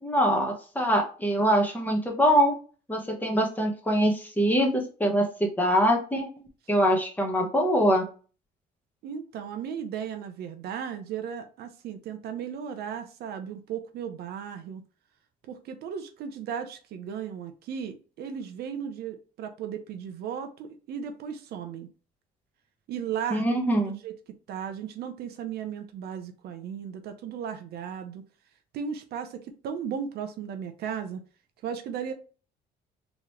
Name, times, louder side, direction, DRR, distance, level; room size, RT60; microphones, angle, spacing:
voice 1, 0.0-2.6 2.9-8.0 23.3-24.0, equal, 10° left, 2 dB, 1.1 m, -24 dB
voice 2, 9.0-14.8 15.4-21.9 22.9-24.1 24.5-28.2 28.7-31.2 31.6-32.1, right 8 dB, 70° right, 7 dB, 0.7 m, -36 dB
3.7 x 3.0 x 3.2 m, 0.37 s
cardioid pair, 110°, 17 cm